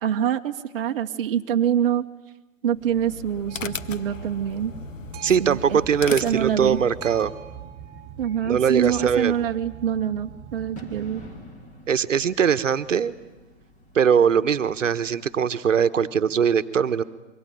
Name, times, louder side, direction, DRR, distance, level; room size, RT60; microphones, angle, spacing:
voice 1, 0.0-2.0 2.6-4.7 5.4-5.8 6.2-6.8 8.2-11.2, right 9 dB, 45° right, 4 dB, 1.0 m, -25 dB
sound 1, 2.7-7.2, left 7 dB, 70° left, 1.1 m, -37 dB
Boat Water vehicle, 3.5-11.4, right 8 dB, 20° right, 1.5 m, -42 dB
voice 2, 5.2-7.3 8.5-9.4 11.9-13.1 13.9-17.0, right 7 dB, 65° right, 12 dB, 1.2 m, -21 dB
Bird / Fireworks, 6.8-15.9, left 2 dB, 20° left, 2.8 m, -50 dB
26.0 x 23.5 x 9.1 m, 1.1 s
figure-of-eight pair, 135°, 40 cm